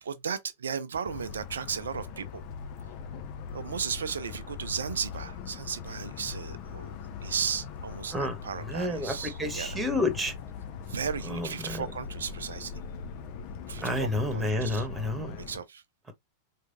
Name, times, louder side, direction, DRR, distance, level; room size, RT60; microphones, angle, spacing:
voice 1, 0.0-2.4 3.5-6.9 7.2-9.9 10.9-12.7 13.7-14.9 15.4-15.8, right 7 dB, 70° right, 0.6 m, -35 dB
Motor vehicle (road) / Siren, 1.1-15.6, left 6 dB, 45° left, 0.7 m, -41 dB
voice 2, 8.6-10.3 11.3-11.8 13.8-15.3, left 1 dB, 10° right, 1.3 m, -30 dB
4.6 x 3.3 x 2.7 m
figure-of-eight pair, 90°, 0 cm